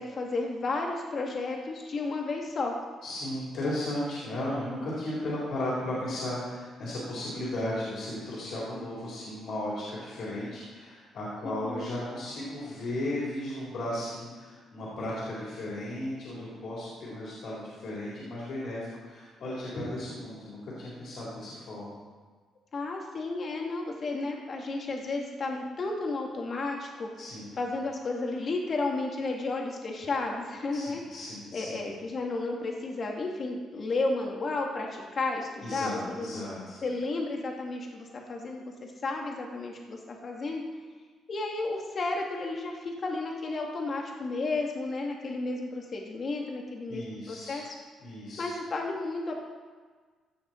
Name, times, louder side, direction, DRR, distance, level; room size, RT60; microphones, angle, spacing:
voice 1, 0.0-2.7 11.4-11.9 22.7-27.1 27.6-31.0 31.5-36.4 36.8-38.7 39.0-40.6 41.3-47.8 48.4-49.3, left 3 dB, 45° left, 0 dB, 2.2 m, -32 dB
voice 2, 3.0-22.0 27.2-27.6 30.7-31.9 35.6-36.8 46.9-47.6 48.0-48.5, left 1 dB, 65° left, -7 dB, 4.0 m, -35 dB
16.0 x 6.6 x 4.5 m, 1.5 s
cardioid pair, 90°, 0 cm